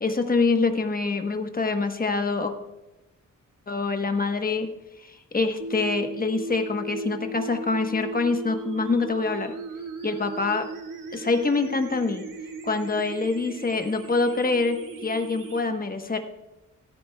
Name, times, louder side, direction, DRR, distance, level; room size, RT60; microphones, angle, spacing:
voice 1, 0.0-2.5 3.7-4.7 5.0-9.5 10.0-10.6 11.1-12.2 12.6-16.2, left 3 dB, 25° left, 6 dB, 1.1 m, -25 dB
sound 1, 5.6-15.6, right 2 dB, 80° right, 2.0 m, -37 dB
16.5 x 13.0 x 2.3 m, 1.0 s
wide cardioid pair, 135°, 32 cm